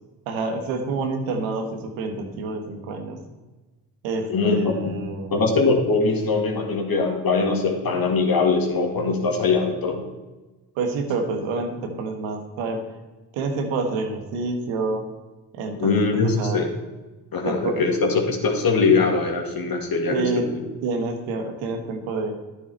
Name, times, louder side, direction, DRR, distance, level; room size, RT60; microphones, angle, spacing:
voice 1, 0.2-3.2 4.0-5.4 10.8-12.8 13.3-15.0 15.5-16.6 17.4-17.8 20.1-20.4 20.8-22.3, right 3 dB, 80° right, 5 dB, 1.6 m, -28 dB
voice 2, 4.3-4.9 5.3-10.0 15.8-16.7 17.3-20.6, left 4 dB, 50° left, 2 dB, 2.5 m, -22 dB
11.0 x 9.9 x 4.4 m, 1.2 s
hypercardioid pair, 45°, 47 cm